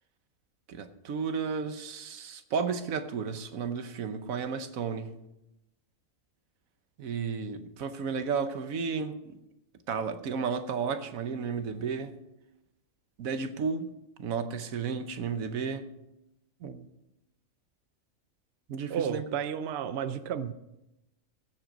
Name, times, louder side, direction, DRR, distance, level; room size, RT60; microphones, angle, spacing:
voice 1, 0.7-5.1 7.0-9.4 9.9-12.1 13.2-13.9 14.2-15.9 16.6-16.9 18.7-19.3, right 5 dB, 85° right, 1.3 m, -33 dB
voice 2, 18.9-20.5, right 8 dB, 60° right, 0.8 m, -32 dB
16.0 x 7.6 x 5.2 m
omnidirectional pair, 1.4 m